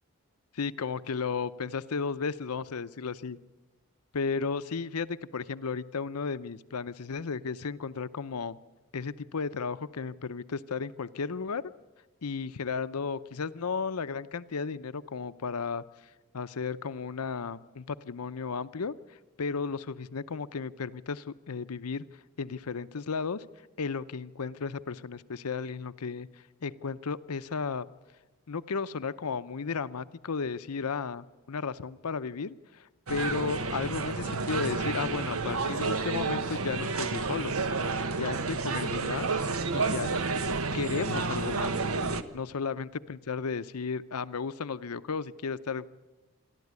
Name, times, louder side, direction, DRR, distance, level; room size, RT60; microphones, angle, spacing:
voice 1, 0.5-3.4 4.1-8.6 8.9-11.6 12.2-15.8 16.3-18.9 19.4-22.0 22.4-23.4 23.8-26.3 26.6-27.9 28.5-37.5 38.2-39.3 39.7-40.3 40.7-41.8 42.3-45.9, left 5 dB, 90° left, 14 dB, 0.7 m, -34 dB
sound 1, 33.1-42.2, right 4 dB, 75° right, 1.1 m, -30 dB
27.0 x 12.0 x 9.6 m, 1.2 s
head